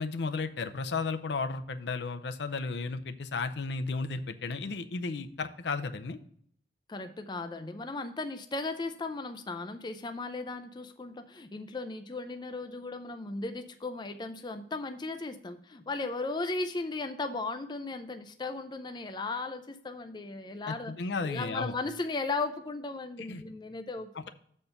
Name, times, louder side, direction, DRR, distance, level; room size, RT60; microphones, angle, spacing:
voice 1, 0.0-6.2 20.7-21.7 23.2-23.4, left 4 dB, 70° left, 8 dB, 0.6 m, -34 dB
voice 2, 6.9-21.0 21.2-24.3, left 3 dB, 25° left, 7 dB, 0.4 m, -36 dB
7.1 x 4.4 x 6.5 m, 0.64 s
head